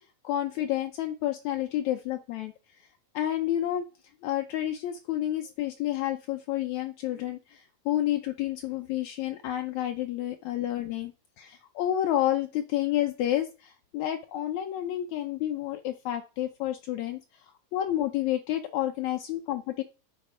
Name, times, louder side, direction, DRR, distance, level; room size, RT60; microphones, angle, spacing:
voice 1, 0.2-2.5 3.1-3.9 4.2-17.2 17.7-19.8, left 12 dB, 85° left, 5 dB, 1.6 m, -30 dB
10.5 x 4.4 x 5.4 m, 0.33 s
omnidirectional pair, 4.1 m